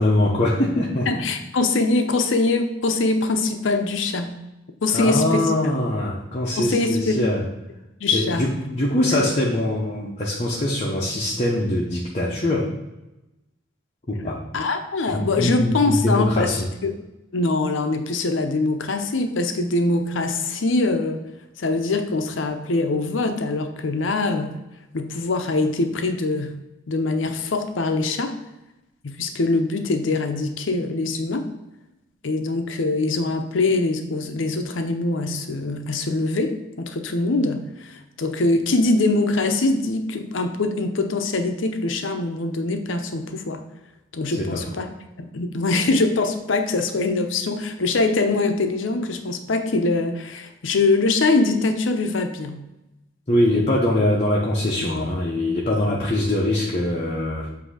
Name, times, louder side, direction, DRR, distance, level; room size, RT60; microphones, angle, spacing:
voice 1, 0.0-1.2 4.9-7.4 8.1-12.8 14.1-14.4 15.1-16.7 44.4-44.6 53.3-57.5, left 1 dB, 35° left, -3 dB, 0.8 m, -22 dB
voice 2, 1.1-4.3 4.8-5.7 6.6-7.2 8.0-8.5 14.5-16.6 16.8-16.9 17.3-21.2 21.6-24.6 24.9-26.5 26.9-28.4 29.0-31.5 32.2-43.6 44.1-44.9 45.2-52.7 54.8-55.1 55.7-55.8, left 3 dB, 80° left, 6 dB, 0.6 m, -23 dB
7.8 x 2.7 x 4.8 m, 0.97 s
head